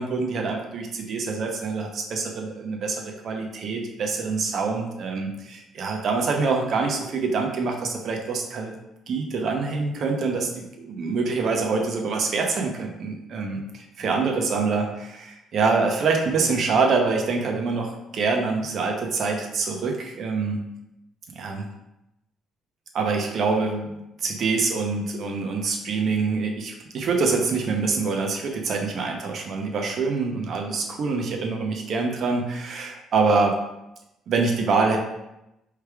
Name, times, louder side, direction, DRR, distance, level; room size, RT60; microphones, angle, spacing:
voice 1, 0.0-8.7 9.1-20.6 21.3-21.6 22.9-23.9 24.2-33.5 34.3-35.0, right 4 dB, 55° right, 2 dB, 0.7 m, -25 dB
4.5 x 3.3 x 3.4 m, 0.89 s
cardioid pair, 125°, 0 cm